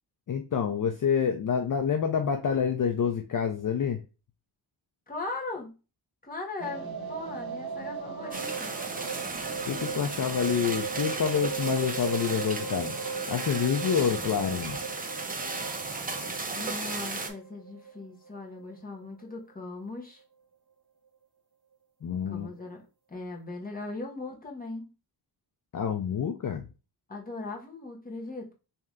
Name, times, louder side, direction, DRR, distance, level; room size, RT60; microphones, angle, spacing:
voice 1, 0.3-4.0 9.6-13.0 13.3-14.8 22.0-22.5 25.7-26.7, left 7 dB, 50° left, 0.5 m, -27 dB
voice 2, 5.1-5.8 6.2-8.7 16.5-20.2 22.1-22.8 23.1-24.9 27.1-28.5, left 3 dB, 20° left, 1.0 m, -39 dB
sound 1, 6.6-18.7 19.0-19.1 19.4-19.5 19.7-19.8, right 5 dB, 60° right, 1.2 m, -38 dB
sound 2, 8.3-17.3, right 3 dB, 20° right, 0.5 m, -35 dB
3.2 x 2.8 x 3.6 m
wide cardioid pair, 130°, 42 cm